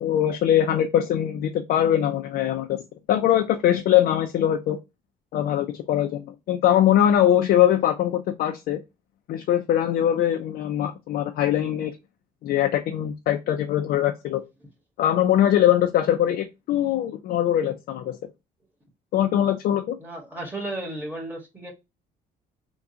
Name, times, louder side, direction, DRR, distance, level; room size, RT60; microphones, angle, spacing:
voice 1, 0.0-2.8 3.1-4.8 5.3-8.8 9.3-12.0 12.4-14.4 15.0-18.2 19.1-20.0, left 11 dB, 65° left, 0.5 m, -22 dB
voice 2, 20.0-21.7, right 1 dB, 10° right, 1.5 m, -34 dB
3.6 x 2.3 x 2.8 m
cardioid pair, 110°, 17 cm